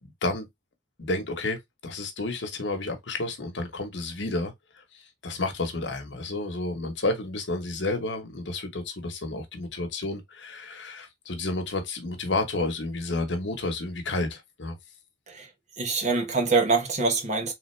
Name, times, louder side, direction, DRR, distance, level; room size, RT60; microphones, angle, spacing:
voice 1, 0.0-0.5 1.0-14.7, left 2 dB, 75° left, 1.1 m, -31 dB
voice 2, 15.8-17.5, right 4 dB, 40° right, 1.3 m, -24 dB
3.8 x 3.4 x 3.2 m
head